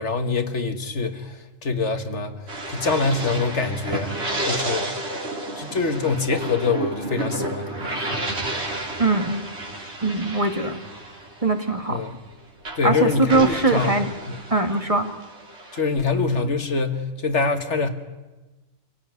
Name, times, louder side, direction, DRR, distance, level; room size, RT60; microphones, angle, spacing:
voice 1, 0.0-2.3 2.7-4.1 4.5-4.9 5.6-7.9 11.9-12.2 12.8-13.9 14.3-14.4 15.7-17.9, left 4 dB, 65° left, 8 dB, 1.8 m, -24 dB
sound 1, 2.5-12.3 12.6-16.4, right 2 dB, 55° right, 3.4 m, -31 dB
voice 2, 9.0-9.4 10.0-10.8 11.4-12.0 12.8-14.1 14.5-15.1, right 3 dB, 25° right, 6 dB, 1.7 m, -21 dB
26.5 x 17.5 x 9.4 m, 1.2 s
omnidirectional pair, 1.3 m